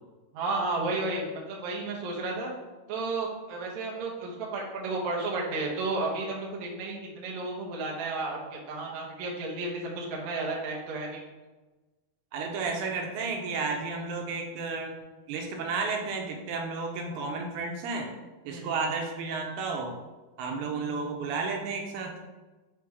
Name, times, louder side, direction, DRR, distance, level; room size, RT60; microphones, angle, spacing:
voice 1, 0.3-2.5 2.9-11.2 18.5-18.7, right 3 dB, 65° right, -3 dB, 2.0 m, -32 dB
voice 2, 12.3-15.0 15.3-18.1 18.4-19.9 20.4-22.2, right 4 dB, 85° right, 2 dB, 2.8 m, -32 dB
6.0 x 4.8 x 3.6 m, 1.2 s
omnidirectional pair, 4.5 m